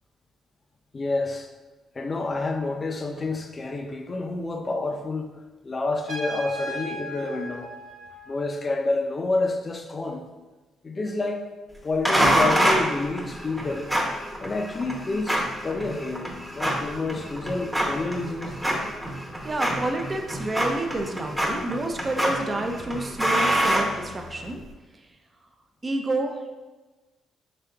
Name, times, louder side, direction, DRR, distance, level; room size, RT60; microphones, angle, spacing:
voice 1, 0.9-1.5 1.9-5.3 5.6-7.7 8.3-10.2 10.8-11.5 11.8-13.9 14.4-18.5, left 2 dB, 30° left, 4 dB, 0.5 m, -29 dB
Trumpet, 6.1-8.7, equal, 90° right, 1.0 m, -37 dB
sound 1, 12.1-24.5, equal, ahead, 0.8 m, -26 dB
voice 2, 19.4-24.6 24.9-25.0 25.8-26.6, right 2 dB, 30° right, 4 dB, 0.5 m, -29 dB
5.0 x 3.6 x 2.3 m, 1.2 s
cardioid pair, 90°, 0 cm